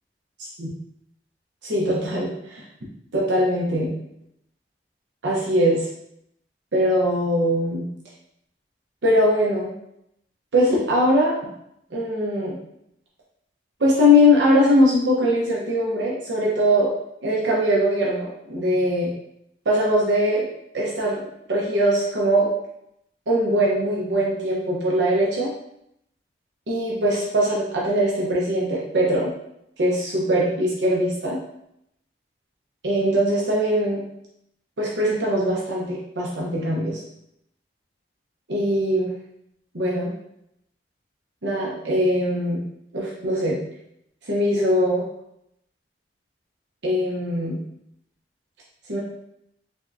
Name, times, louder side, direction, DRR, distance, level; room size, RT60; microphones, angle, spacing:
voice 1, 1.6-2.6 3.1-3.9 5.2-5.8 6.7-7.8 9.0-9.7 10.5-11.3 11.9-12.6 13.8-16.9 17.2-19.1 19.7-20.5 20.7-21.2 21.5-22.5 23.3-25.5 26.7-29.3 29.8-31.4 32.8-34.0 34.8-37.0 38.5-39.1 39.7-40.1 41.4-42.6 42.9-43.6 44.3-45.0 46.8-47.6 48.9-49.0, equal, 80° right, -4 dB, 0.8 m, -21 dB
3.5 x 3.5 x 2.6 m, 0.78 s
head